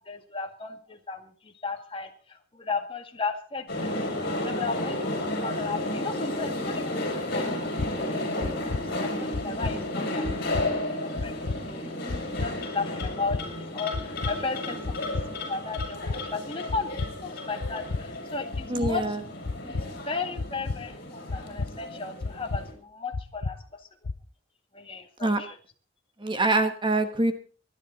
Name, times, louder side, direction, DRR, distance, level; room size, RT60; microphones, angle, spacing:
voice 1, 0.0-8.7 9.0-10.3 11.0-11.9 12.2-16.9 17.2-19.2 19.6-23.9 24.7-25.6, left 4 dB, 25° left, 4 dB, 2.0 m, -35 dB
sound 1, 3.7-22.7, left 1 dB, 50° left, 5.7 m, -33 dB
sound 2, 7.8-7.9 8.4-8.8 9.3-9.7 10.2-10.7 11.2-11.6 12.1-12.5 13.0-13.4 13.9-14.3 14.8-15.3 15.8-16.2 16.7-17.1 17.6-18.0 18.5-18.9 19.4-19.9 20.4-20.8 21.3-21.7 22.2-22.6 23.1-23.5 24.0-24.2, left 3 dB, 80° left, 0.7 m, -31 dB
voice 2, 18.7-19.2 25.2-25.4 26.2-27.3, right 2 dB, 25° right, 9 dB, 1.2 m, -24 dB
24.5 x 11.0 x 4.0 m, 0.37 s
head